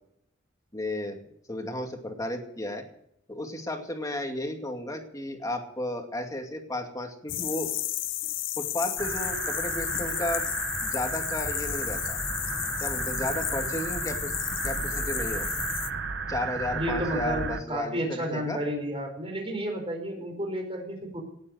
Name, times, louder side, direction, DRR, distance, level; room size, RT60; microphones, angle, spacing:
voice 1, 0.7-1.2 1.5-2.8 3.3-7.7 8.6-12.2 12.8-14.3 14.6-15.5 16.3-18.6, left 1 dB, 20° left, 4 dB, 2.4 m, -33 dB
sound 1, 7.3-15.9, left 15 dB, 85° left, 0.6 m, -33 dB
sound 2, 9.0-17.6, right 5 dB, 65° right, 1.2 m, -33 dB
voice 2, 16.7-21.2, equal, 30° right, 2 dB, 5.0 m, -31 dB
18.5 x 8.4 x 8.1 m, 0.72 s
head